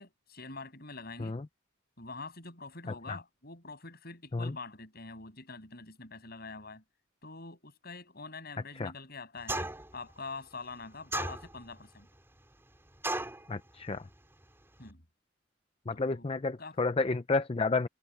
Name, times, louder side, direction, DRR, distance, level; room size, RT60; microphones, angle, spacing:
voice 1, 0.0-1.4 2.0-6.8 7.2-12.1 14.8-15.0 15.9-16.3 16.6-16.8, left 3 dB, 50° left, 7.6 m, -45 dB
voice 2, 2.9-3.2 4.3-4.5 8.8-8.9 13.5-14.1 15.9-17.9, left 3 dB, 30° left, 0.5 m, -31 dB
sound 1, 9.5-10.0 11.1-11.8 13.0-13.4, right 2 dB, 10° right, 3.6 m, -34 dB
head